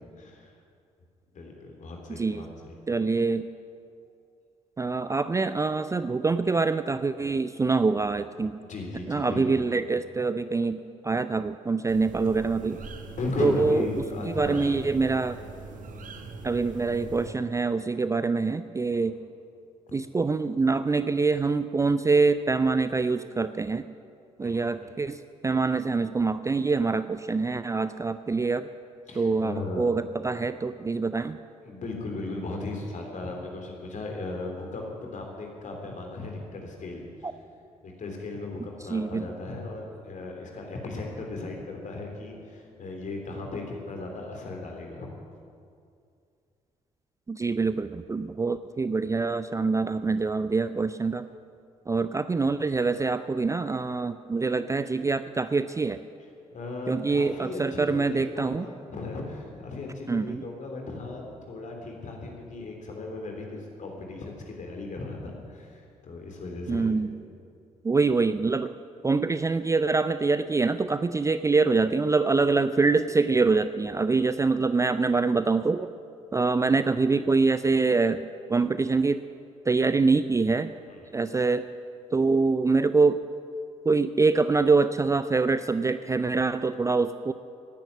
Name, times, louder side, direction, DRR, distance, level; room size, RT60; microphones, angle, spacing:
voice 1, 0.2-0.5 1.3-3.1 8.6-9.6 13.1-14.7 16.5-16.6 18.9-19.1 19.9-20.0 24.4-24.9 29.1-29.9 31.6-37.3 37.8-45.1 56.5-66.9 80.9-81.3, left 2 dB, 45° left, 1 dB, 3.3 m, -37 dB
voice 2, 2.1-2.4 2.9-3.5 4.8-8.5 9.1-12.8 13.4-13.9 14.4-15.4 16.4-19.1 19.9-23.9 24.4-28.7 29.2-31.4 38.9-39.3 47.3-51.2 51.9-56.0 56.9-58.7 60.1-60.4 66.7-67.1 67.8-68.7 69.0-75.9 76.3-78.2 78.5-79.2 79.7-80.7 81.1-81.6 82.1-83.2 83.9-87.3, right 4 dB, 15° right, 13 dB, 0.5 m, -25 dB
sound 1, 11.9-17.3, right 3 dB, 50° right, 1.3 m, -42 dB
17.0 x 10.5 x 7.4 m, 2.4 s
figure-of-eight pair, 40°, 18 cm